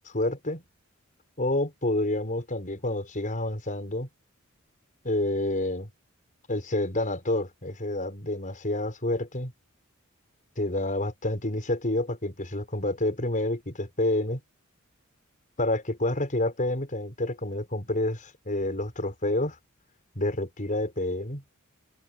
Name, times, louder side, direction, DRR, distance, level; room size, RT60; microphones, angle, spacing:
voice 1, 0.1-0.6 1.4-4.1 5.0-5.9 6.5-9.5 10.6-14.4 15.6-19.6 20.2-21.4, left 1 dB, 40° left, 5.9 m, -28 dB
open air
head